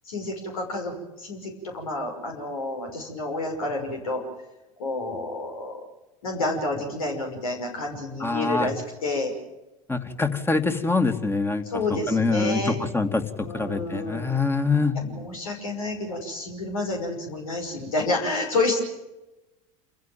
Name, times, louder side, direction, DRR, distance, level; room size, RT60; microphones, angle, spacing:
voice 1, 0.1-4.2 4.8-5.8 6.2-9.3 11.6-12.8 13.4-14.3 14.9-18.8, left 2 dB, 80° left, 2 dB, 5.8 m, -29 dB
voice 2, 8.2-8.7 9.9-11.6 12.1-12.6 12.9-13.2 13.5-15.0, left 3 dB, 10° left, 7 dB, 2.5 m, -24 dB
27.5 x 15.5 x 9.3 m, 1.0 s
hypercardioid pair, 80°, 18 cm